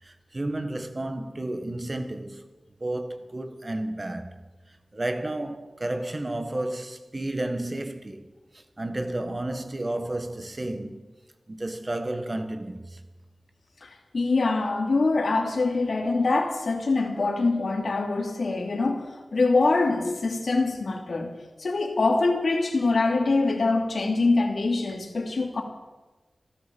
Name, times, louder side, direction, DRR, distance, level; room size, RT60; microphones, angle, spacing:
voice 1, 0.0-2.5 2.8-4.4 4.7-8.3 8.5-11.0 11.5-13.0, right 1 dB, 35° right, 1.7 m, -32 dB
voice 2, 13.8-21.3 21.6-25.6, left 3 dB, 70° left, 2.9 m, -24 dB
15.0 x 13.5 x 7.1 m
wide cardioid pair, 75°, 0 cm